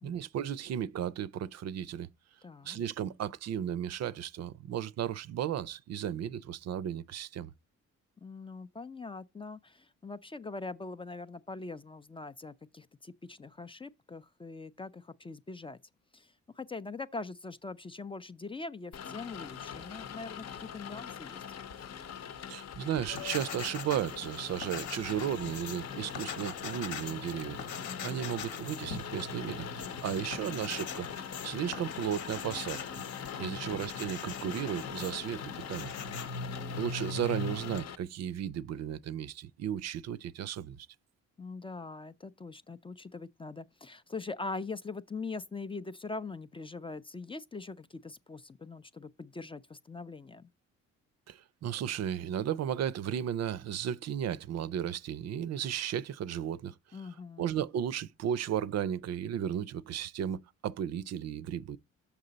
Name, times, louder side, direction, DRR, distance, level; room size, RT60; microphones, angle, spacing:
voice 1, 0.0-2.1 2.6-7.5 22.5-31.1 31.4-32.8 33.4-35.4 35.7-35.9 36.7-40.9 51.3-56.7 57.4-61.8, right 9 dB, 60° right, 0.5 m, -34 dB
voice 2, 2.4-2.8 8.2-15.8 16.1-21.4 27.8-28.2 30.1-30.7 33.4-33.8 36.3-36.8 41.4-50.5 56.9-57.5, left 3 dB, 20° left, 0.4 m, -42 dB
Rain, 18.9-37.9, left 8 dB, 55° left, 0.8 m, -42 dB
sound 1, 23.1-37.8, left 4 dB, 80° left, 1.2 m, -42 dB
6.7 x 5.8 x 3.9 m
cardioid pair, 90°, 30 cm